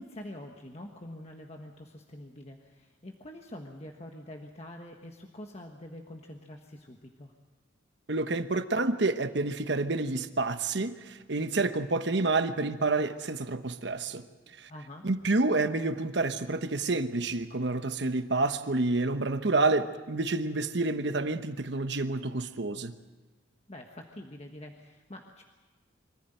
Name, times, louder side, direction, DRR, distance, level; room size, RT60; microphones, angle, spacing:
voice 1, 0.0-7.3 14.7-15.1 23.7-25.4, left 1 dB, 35° left, 1.3 m, -45 dB
voice 2, 8.1-14.3 14.6-14.7 15.0-22.9, right 3 dB, 60° right, 1.1 m, -29 dB
24.5 x 15.0 x 9.1 m
head